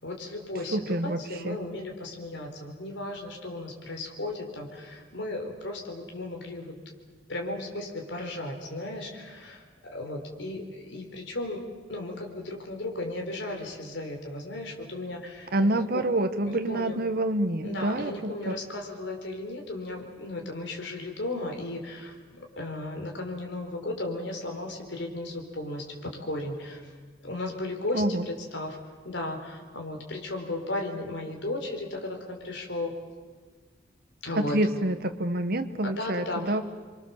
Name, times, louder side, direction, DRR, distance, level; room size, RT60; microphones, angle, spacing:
voice 1, 0.0-6.8 7.3-11.6 11.9-16.1 16.5-17.0 17.6-22.1 22.6-26.8 27.2-28.8 29.0-32.9 34.2-34.6 35.9-36.6, left 2 dB, 70° left, 2 dB, 4.4 m, -35 dB
voice 2, 0.7-1.6 15.5-18.5 27.9-28.3 34.4-36.6, right 1 dB, 55° right, 8 dB, 1.4 m, -27 dB
28.5 x 24.0 x 7.3 m, 1.5 s
head